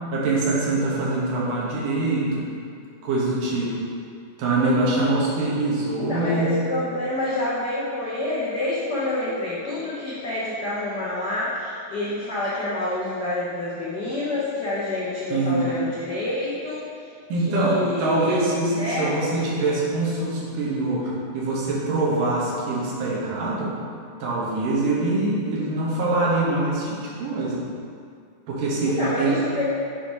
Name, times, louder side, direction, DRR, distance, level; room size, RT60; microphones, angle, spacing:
voice 1, 0.1-2.5 3.0-3.8 4.4-6.5 15.3-15.6 17.3-23.7 24.2-27.6 28.5-28.9 29.2-29.4, right 2 dB, 90° right, -5 dB, 3.0 m, -24 dB
voice 2, 6.0-16.9 17.5-18.4 18.8-19.1 28.8-29.6, left 2 dB, 70° left, -9 dB, 0.9 m, -28 dB
6.9 x 4.6 x 5.4 m, 2.3 s
omnidirectional pair, 3.6 m